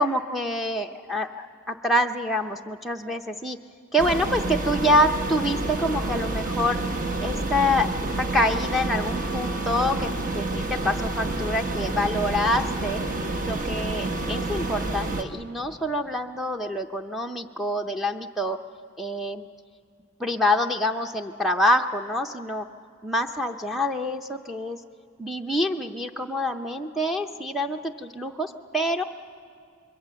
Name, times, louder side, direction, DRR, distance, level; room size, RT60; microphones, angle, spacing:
voice 1, 0.0-3.6 3.9-6.8 7.2-7.9 8.2-13.0 13.4-18.6 19.0-19.5 20.2-22.7 23.0-24.8 25.2-29.0, left 1 dB, ahead, 1 dB, 0.5 m, -26 dB
sound 1, 4.0-15.2, right 2 dB, 40° right, 1.2 m, -29 dB
26.0 x 22.5 x 6.8 m, 2.4 s
head